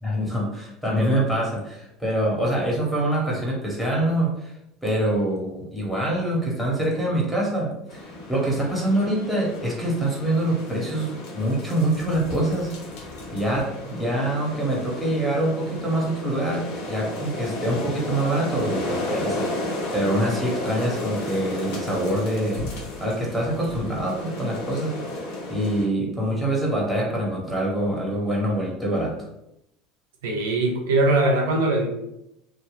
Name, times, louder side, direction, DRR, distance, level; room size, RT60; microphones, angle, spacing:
voice 1, 0.0-4.5 4.8-12.7 13.0-25.0 25.5-29.3, right 1 dB, ahead, -4 dB, 1.4 m, -25 dB
sound 1, 7.9-25.8, left 2 dB, 70° left, 0.9 m, -33 dB
voice 2, 30.2-31.9, right 2 dB, 85° right, 1 dB, 0.5 m, -21 dB
2.9 x 2.3 x 3.4 m, 0.83 s
hypercardioid pair, 90°, 0 cm